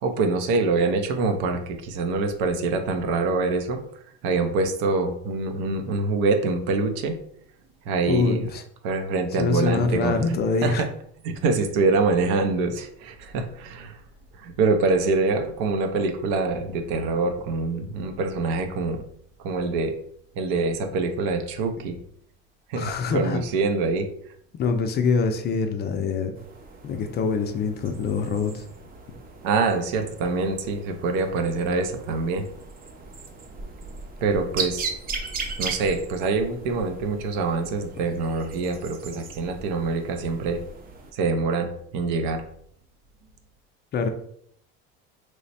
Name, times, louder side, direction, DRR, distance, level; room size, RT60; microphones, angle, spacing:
voice 1, 0.0-3.8 4.2-7.2 7.9-8.5 8.8-10.2 10.6-10.9 11.2-14.0 14.4-19.0 19.4-19.9 20.3-22.0 22.7-24.1 29.4-32.5 34.2-34.9 35.6-40.6 41.1-42.4, right 3 dB, 75° right, 7 dB, 0.6 m, -25 dB
voice 2, 8.1-8.6 9.4-10.8 22.7-23.4 24.5-26.3 26.8-28.6 43.9-44.1, left 4 dB, 35° left, 6 dB, 0.4 m, -24 dB
Birds of Noosa Biosphere Reserve, 26.3-41.1, right 4 dB, 30° right, 0.5 m, -38 dB
3.1 x 2.1 x 4.1 m, 0.66 s
supercardioid pair, 115°, 31 cm